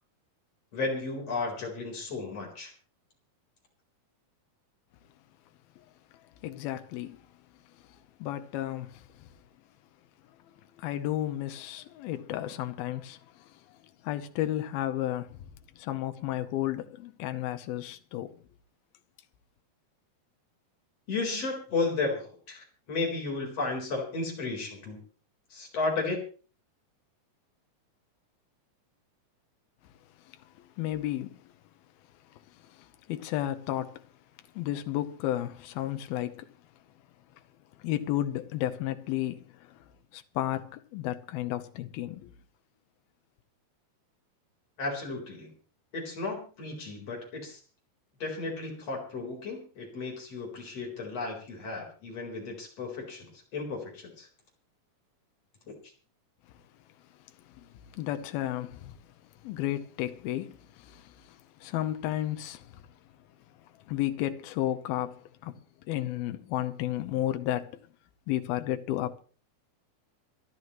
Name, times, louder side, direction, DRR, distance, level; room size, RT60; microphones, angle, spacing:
voice 1, 0.7-2.7 21.1-25.0 25.5-26.2 44.8-45.5 45.9-47.6 48.2-54.3 55.7-55.8, left 3 dB, 45° left, 5.1 m, -34 dB
voice 2, 6.4-7.2 8.2-9.3 10.8-13.2 14.0-15.4 15.8-18.4 30.8-31.4 32.8-34.0 34.6-36.5 37.8-39.5 40.1-42.3 57.6-57.7 57.9-59.0 59.4-61.1 61.6-62.7 63.9-65.6 65.9-67.8 68.3-69.2, left 13 dB, 85° left, 2.8 m, -32 dB
25.5 x 12.0 x 3.1 m
omnidirectional pair, 4.3 m